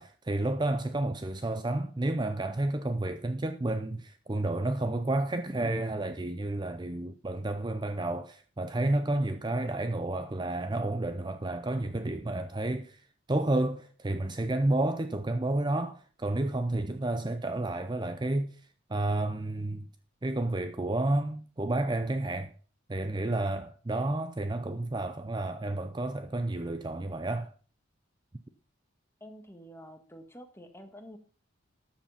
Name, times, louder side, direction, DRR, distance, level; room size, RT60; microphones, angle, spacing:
voice 1, 0.0-19.9 20.2-22.5 22.9-27.5, right 2 dB, 20° right, 0.5 m, -31 dB
voice 2, 29.2-31.2, equal, 10° left, 1.6 m, -48 dB
13.0 x 7.3 x 5.7 m
head